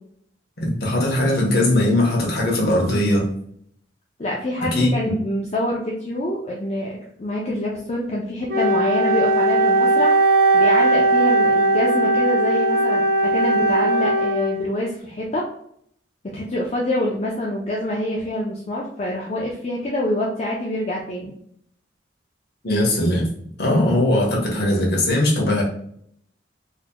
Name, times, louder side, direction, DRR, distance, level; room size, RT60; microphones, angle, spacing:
voice 1, 0.6-3.3 4.6-4.9 22.6-23.3 23.6-25.6, left 1 dB, 55° left, -2 dB, 1.2 m, -19 dB
voice 2, 4.2-6.9 7.2-10.2 10.5-15.4 16.2-21.3, left 1 dB, 35° left, -3 dB, 0.5 m, -26 dB
Wind instrument woodwind instrument, 8.5-14.9, right 2 dB, 50° right, 0.5 m, -18 dB
4.0 x 2.9 x 2.2 m, 0.67 s
head